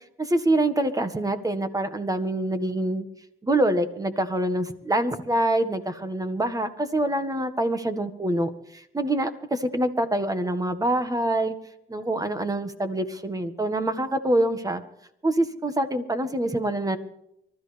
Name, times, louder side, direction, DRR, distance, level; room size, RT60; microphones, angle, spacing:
voice 1, 0.2-3.1 3.4-11.6 11.9-14.8 15.2-17.0, right 1 dB, 15° right, 10 dB, 1.8 m, -25 dB
24.5 x 13.5 x 3.5 m, 0.77 s
cardioid pair, 90°, 20 cm